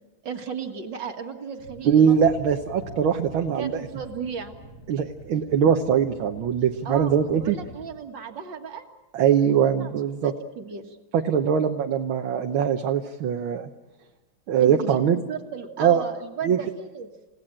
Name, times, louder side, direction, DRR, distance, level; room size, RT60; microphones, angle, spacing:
voice 1, 0.2-2.2 3.6-4.6 6.9-8.9 9.4-9.9 10.2-11.0 14.6-17.1, right 6 dB, 65° right, 5 dB, 2.3 m, -35 dB
sound 1, 1.6-7.9, equal, 50° left, 2.9 m, -44 dB
voice 2, 1.9-3.7 4.9-7.6 9.1-10.3 11.1-13.7 14.5-15.2 15.8-16.0 16.4-16.6, right 8 dB, 80° right, 4 dB, 1.8 m, -21 dB
29.5 x 17.0 x 8.8 m, 1.2 s
omnidirectional pair, 2.2 m